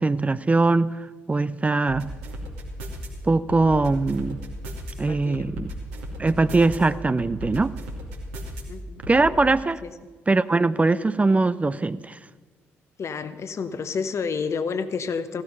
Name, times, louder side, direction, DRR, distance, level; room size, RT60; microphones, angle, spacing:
voice 1, 0.0-2.1 3.2-4.4 5.0-5.7 6.2-7.8 9.1-9.8 10.3-12.2, right 3 dB, 20° right, 15 dB, 0.5 m, -21 dB
sound 1, 1.9-3.1 3.5-4.9 5.3-6.8 7.2-8.6 9.0-9.2, equal, 80° right, 2.4 m, -35 dB
voice 2, 5.1-5.5 8.7-9.0 9.8-9.9 13.0-15.4, left 5 dB, 45° left, 11 dB, 1.0 m, -29 dB
15.5 x 12.5 x 5.5 m, 1.4 s
hypercardioid pair, 45°, 7 cm